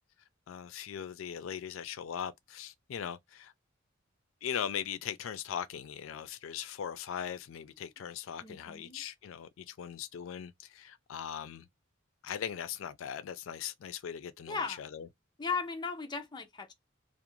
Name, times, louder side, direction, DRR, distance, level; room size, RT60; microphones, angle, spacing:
voice 1, 0.5-3.5 4.4-11.7 12.2-15.1, left 8 dB, 80° left, 0.4 m, -39 dB
voice 2, 8.4-9.0 14.5-14.8 15.4-16.7, left 5 dB, 20° left, 0.5 m, -36 dB
2.4 x 2.0 x 2.9 m
head